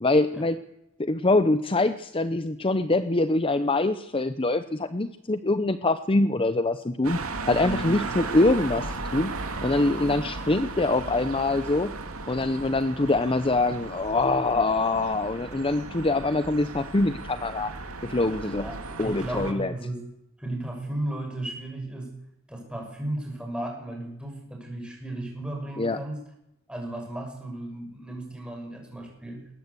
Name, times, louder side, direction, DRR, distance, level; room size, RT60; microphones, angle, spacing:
voice 1, 0.0-0.6 1.0-7.2 7.5-9.3 9.6-11.9 12.3-17.7 18.0-18.7 19.0-19.7 25.8-26.0, left 2 dB, 25° left, 12 dB, 0.7 m, -24 dB
sound 1, 7.0-19.5, right 3 dB, 90° right, 2.6 m, -36 dB
voice 2, 7.6-8.0 18.6-20.0 20.4-22.1 22.5-26.2 26.7-29.5, right 1 dB, 5° right, 1 dB, 6.3 m, -35 dB
21.0 x 18.5 x 8.3 m, 0.82 s
head